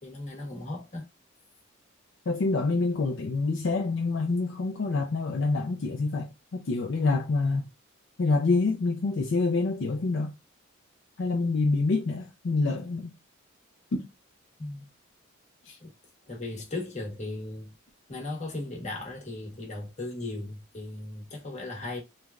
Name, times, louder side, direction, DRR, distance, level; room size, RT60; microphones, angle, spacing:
voice 1, 0.0-1.1 14.6-14.9 15.8-15.9 16.3-17.7 18.1-22.0, left 2 dB, 35° left, 1.1 m, -37 dB
voice 2, 2.3-7.7 8.2-10.3 11.2-13.1 13.9-14.1 15.7-15.8, left 3 dB, 60° left, 0.4 m, -27 dB
3.2 x 2.2 x 2.3 m
head